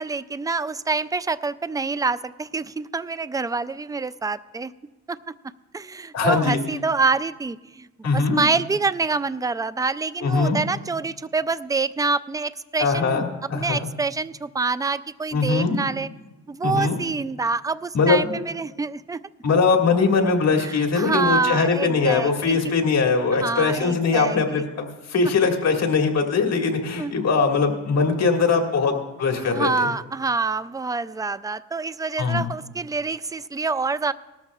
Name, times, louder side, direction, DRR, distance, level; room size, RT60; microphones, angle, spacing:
voice 1, 0.0-4.7 5.1-5.2 5.7-13.2 13.5-16.1 16.5-19.2 20.5-22.6 23.4-24.6 27.0-27.1 29.4-34.1, right 4 dB, 10° right, 16 dB, 0.3 m, -26 dB
voice 2, 6.1-6.6 8.0-8.4 10.2-10.6 12.8-13.8 15.3-15.8 16.6-17.0 17.9-18.3 19.4-28.9 29.2-29.9 32.2-32.4, left 4 dB, 55° left, 2 dB, 2.0 m, -21 dB
19.0 x 13.0 x 2.4 m, 1.1 s
cardioid pair, 90°, 30 cm